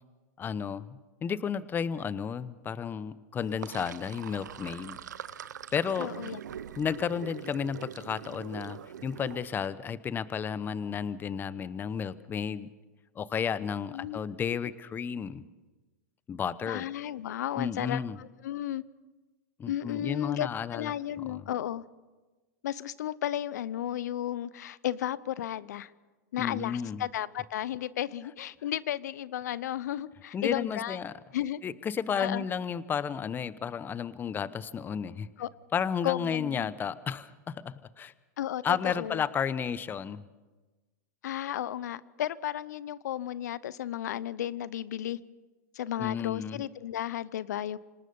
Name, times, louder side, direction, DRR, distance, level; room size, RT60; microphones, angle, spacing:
voice 1, 0.4-5.0 5.7-6.1 6.8-12.7 13.2-15.4 16.3-16.8 17.6-18.2 19.6-20.9 21.2-21.4 26.4-27.0 30.3-31.1 31.6-35.3 35.7-38.1 38.6-40.2 46.0-46.6, left 7 dB, 20° left, 16 dB, 0.9 m, -32 dB
Sink (filling or washing), 3.4-9.7, right 9 dB, 85° right, 0.8 m, -43 dB
voice 2, 6.0-6.4 13.9-14.2 16.7-18.8 19.7-21.8 22.6-25.9 26.3-31.0 31.3-31.6 32.2-32.4 35.4-35.5 36.0-36.7 38.4-39.2 41.2-45.2 45.7-47.8, left 11 dB, 75° left, 19 dB, 0.7 m, -34 dB
26.5 x 18.5 x 5.5 m, 1.2 s
hypercardioid pair, 120°, 9 cm